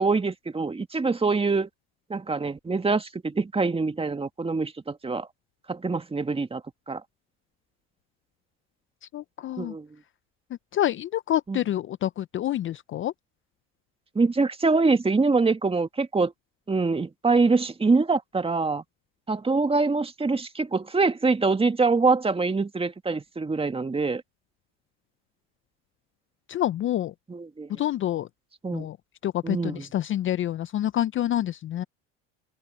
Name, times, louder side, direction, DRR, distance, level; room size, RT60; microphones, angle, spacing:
voice 1, 0.0-1.7 2.1-5.3 5.7-7.0 9.6-9.9 11.5-11.6 14.2-16.3 16.7-18.8 19.3-24.2 27.3-27.7 28.6-28.9 29.4-29.8, right 4 dB, 15° right, 2.0 m, -24 dB
voice 2, 9.1-9.8 10.7-13.1 26.5-27.1 27.7-28.3 28.7-29.0 29.2-31.8, left 12 dB, 35° left, 0.6 m, -27 dB
supercardioid pair, 90°, 35 cm